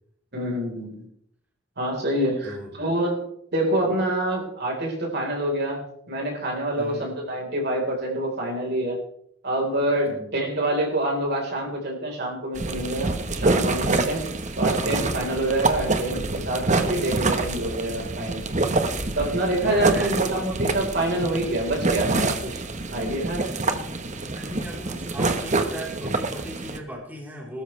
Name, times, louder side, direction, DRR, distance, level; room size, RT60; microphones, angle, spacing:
voice 1, 0.3-1.1 1.8-9.0 9.4-14.3 14.6-18.4 19.1-22.6 22.9-23.5, right 1 dB, 60° right, 0 dB, 4.3 m, -26 dB
voice 2, 2.4-2.8 6.8-7.1 10.1-10.3 19.6-20.5 23.6-27.6, equal, 10° right, -3 dB, 3.8 m, -38 dB
sound 1, 12.6-26.8, right 3 dB, 40° right, 1.2 m, -26 dB
20.0 x 13.0 x 3.3 m, 0.69 s
head